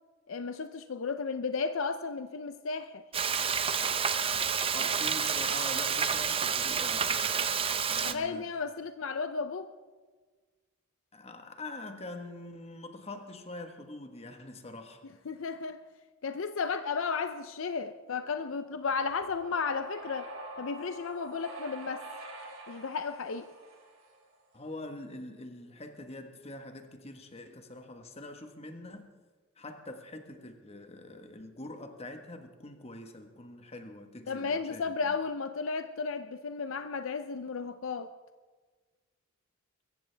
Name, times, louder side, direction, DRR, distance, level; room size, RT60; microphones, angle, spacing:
voice 1, 0.3-3.0 8.0-9.7 15.3-15.8 16.2-20.3 20.6-22.1 22.7-23.5 34.3-38.1, left 5 dB, 70° left, 10 dB, 0.6 m, -34 dB
Frying (food), 3.1-8.1, right 7 dB, 25° right, 0.6 m, -29 dB
voice 2, 4.7-7.6 7.9-8.5 11.1-15.0 24.5-29.1 29.6-35.1, left 2 dB, 30° left, 6 dB, 1.3 m, -44 dB
sound 1, 19.1-24.4, right 1 dB, 70° right, 3.0 m, -46 dB
23.0 x 15.0 x 3.4 m, 1.4 s
head